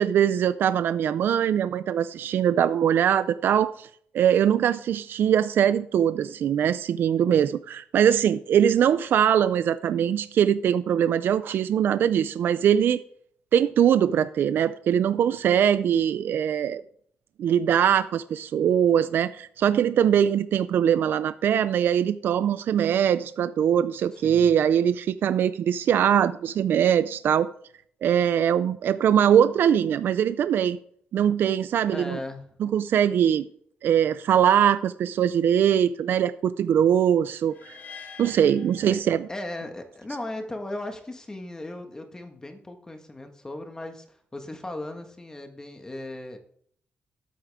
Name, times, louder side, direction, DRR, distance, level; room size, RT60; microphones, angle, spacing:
voice 1, 0.0-3.9 4.1-13.0 13.5-16.8 17.4-27.5 28.0-30.8 31.1-32.2 32.6-33.4 33.8-37.8 38.2-39.2, right 9 dB, 70° right, 0.4 m, -22 dB
voice 2, 24.1-24.5 31.9-32.5 38.8-39.0 39.3-46.4, left 1 dB, 15° left, 1.5 m, -37 dB
sound 1, 37.5-39.6, left 5 dB, 55° left, 1.9 m, -46 dB
12.5 x 8.5 x 3.6 m
cardioid pair, 105°, 4 cm